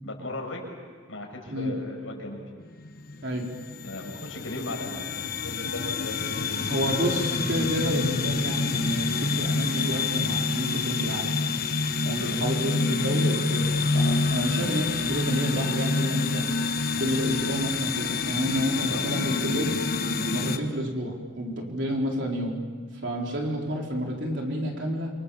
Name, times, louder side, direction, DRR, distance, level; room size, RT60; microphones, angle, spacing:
voice 1, 0.0-0.7 1.1-2.4 3.8-6.8 12.2-12.4 14.5-14.7 18.9-19.3, left 1 dB, 90° left, 1 dB, 6.2 m, -37 dB
sound 1, 2.6-20.6, left 4 dB, 50° left, 1.3 m, -27 dB
voice 2, 6.7-11.3 12.0-13.7 13.9-19.8 20.3-22.6 23.0-25.1, equal, 60° right, 0 dB, 4.4 m, -30 dB
28.0 x 25.0 x 7.2 m, 1.6 s
head